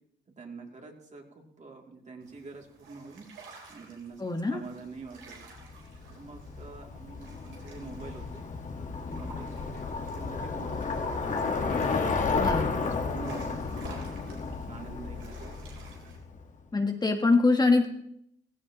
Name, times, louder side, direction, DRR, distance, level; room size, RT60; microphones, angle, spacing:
voice 1, 0.4-3.3 3.7-4.2 4.5-5.4 6.1-8.4 9.1-12.1 12.7-13.6 13.9-14.4 14.7-15.4, right 4 dB, 35° right, 1 dB, 2.6 m, -45 dB
sound 1, 2.2-16.2, right 4 dB, 80° right, 3.7 m, -53 dB
voice 2, 4.2-4.6 12.3-12.7 16.7-17.9, left 3 dB, 20° left, 4 dB, 1.3 m, -24 dB
Bicycle, 5.5-16.4, left 4 dB, 40° left, 1.4 m, -32 dB
15.5 x 15.5 x 3.0 m, 0.73 s
cardioid pair, 90°, 20 cm